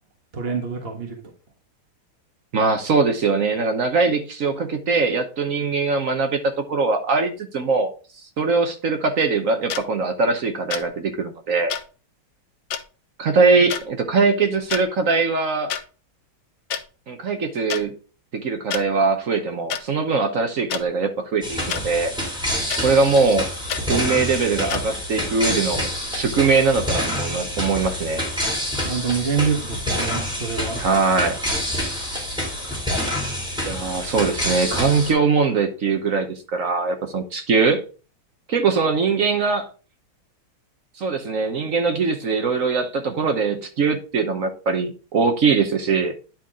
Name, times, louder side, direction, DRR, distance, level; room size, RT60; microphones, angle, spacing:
voice 1, 0.3-1.2 28.8-30.8, right 6 dB, 30° right, 1.5 m, -26 dB
voice 2, 2.5-7.9 8.4-11.7 13.2-15.7 17.1-17.9 18.3-22.1 22.8-23.5 23.9-28.2 30.8-31.4 33.6-37.8 38.5-39.7 41.0-46.1, right 4 dB, 55° right, 1.0 m, -21 dB
sound 1, 9.7-9.8 10.7-10.9 11.7-11.8 12.7-12.8 13.7-13.8 14.6-14.8 15.7-15.8 16.7-16.8 17.7-17.8 18.7-18.8 19.7-19.8 20.7-20.8 21.7-21.8 22.7-22.8 23.7-23.8 24.7-24.8, left 9 dB, 75° left, 1.6 m, -27 dB
sound 2, 21.4-35.1, left 1 dB, ahead, 2.5 m, -27 dB
10.0 x 4.5 x 3.6 m
omnidirectional pair, 2.3 m